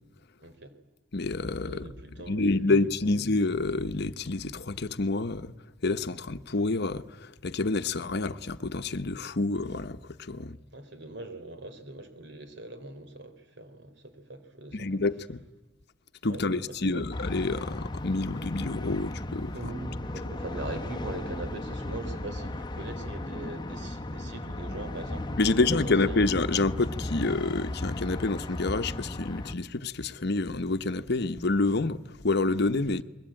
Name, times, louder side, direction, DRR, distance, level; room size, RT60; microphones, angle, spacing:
voice 1, 0.4-0.7 1.6-3.1 10.4-15.0 16.2-17.1 19.5-26.2 32.9-33.0, right 2 dB, 65° right, 3.6 m, -42 dB
voice 2, 1.1-1.9 2.3-5.5 5.8-10.6 14.7-15.4 16.2-19.5 25.4-33.0, left 3 dB, 60° left, 1.0 m, -28 dB
sound 1, 17.1-29.5, left 1 dB, 25° left, 1.0 m, -36 dB
30.0 x 22.0 x 9.0 m
head